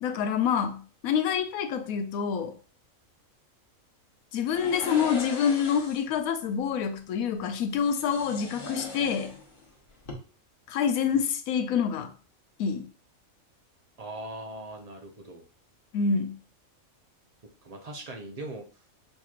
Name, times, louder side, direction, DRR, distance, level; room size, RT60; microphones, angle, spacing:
voice 1, 0.0-2.6 4.3-9.3 10.7-12.1 12.6-12.8 15.9-16.4, left 7 dB, 90° left, 1.1 m, -27 dB
sound 1, 4.5-6.1 7.7-9.7 10.0-10.1, left 3 dB, 45° left, 1.2 m, -39 dB
voice 2, 14.0-15.4 17.6-18.6, right 2 dB, 40° right, 0.6 m, -40 dB
6.6 x 3.0 x 2.4 m
omnidirectional pair, 1.4 m